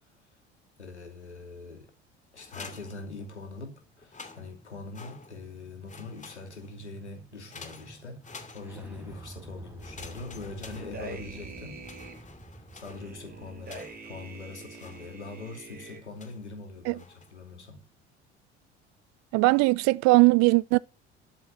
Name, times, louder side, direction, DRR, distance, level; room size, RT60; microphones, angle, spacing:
voice 1, 0.8-1.9 2.3-11.8 12.7-17.1 17.3-17.8, left 3 dB, 90° left, 2.8 m, -43 dB
sound 1, 2.3-3.6 4.0-5.6 5.9-6.8 7.5-9.1 9.8-11.4 11.8-14.2 14.8-15.5 16.2-16.5 17.0-17.5, left 4 dB, 20° left, 2.4 m, -49 dB
sound 2, 3.9-14.1, right 2 dB, 5° right, 6.3 m, -49 dB
sound 3, 10.6-12.2 12.8-16.0, right 3 dB, 30° right, 7.1 m, -44 dB
voice 2, 19.3-20.8, right 23 dB, 55° right, 0.6 m, -20 dB
12.5 x 7.5 x 7.3 m
figure-of-eight pair, 60°, 33 cm